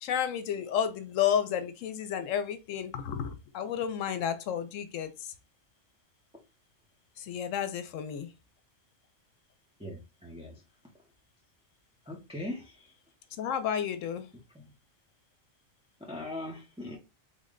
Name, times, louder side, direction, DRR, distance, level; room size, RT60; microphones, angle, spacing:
voice 1, 0.0-5.3 7.2-8.3 13.4-14.3, left 9 dB, 85° left, 1.0 m, -31 dB
voice 2, 9.8-10.6 12.0-12.9 14.5-14.7 16.0-17.0, left 1 dB, 5° right, 0.5 m, -40 dB
3.6 x 2.1 x 3.7 m
omnidirectional pair, 1.3 m